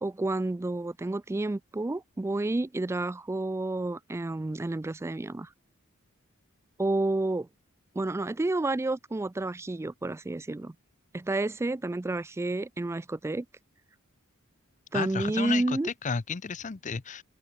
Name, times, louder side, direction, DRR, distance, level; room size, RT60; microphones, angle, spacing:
voice 1, 0.0-5.5 6.8-7.5 8.0-10.7 11.1-13.5 14.9-15.9, right 2 dB, 10° right, 0.3 m, -30 dB
voice 2, 14.9-17.2, left 5 dB, 35° left, 0.6 m, -33 dB
open air
head